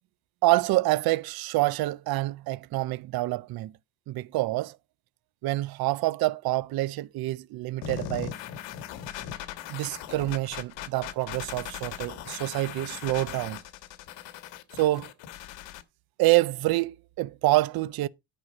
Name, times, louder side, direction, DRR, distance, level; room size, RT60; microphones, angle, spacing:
voice 1, 0.4-3.7 4.1-4.8 5.4-8.3 9.7-13.6 14.8-15.1 16.2-18.1, right 18 dB, 55° right, 0.5 m, -27 dB
sound 1, 7.8-15.8, left 10 dB, 75° left, 1.3 m, -39 dB
9.7 x 4.5 x 5.9 m
cardioid pair, 140°, 44 cm